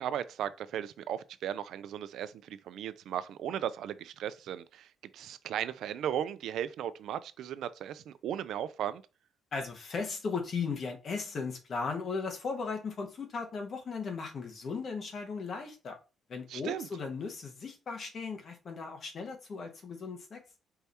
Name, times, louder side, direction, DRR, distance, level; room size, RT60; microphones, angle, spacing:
voice 1, 0.0-9.0 16.5-16.9, right 10 dB, 80° right, 0.4 m, -36 dB
voice 2, 9.5-16.0 16.3-20.4, left 4 dB, 50° left, 1.2 m, -37 dB
4.6 x 2.8 x 3.4 m
cardioid pair, 90°, 0 cm